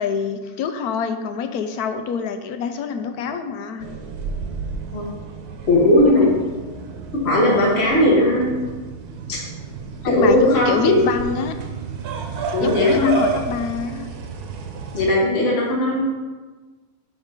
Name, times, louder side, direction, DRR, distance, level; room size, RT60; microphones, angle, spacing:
voice 1, 0.0-3.8 10.0-11.5 12.6-14.1, left 6 dB, 90° left, 8 dB, 1.1 m, -25 dB
sound 1, 3.8-15.1, right 5 dB, 90° right, 1.3 m, -31 dB
voice 2, 5.7-6.3 7.1-8.6 9.3-9.4 10.0-11.0 12.5-13.1 14.9-16.0, left 1 dB, 45° left, -5 dB, 1.4 m, -17 dB
9.5 x 4.0 x 3.7 m, 1.3 s
omnidirectional pair, 1.6 m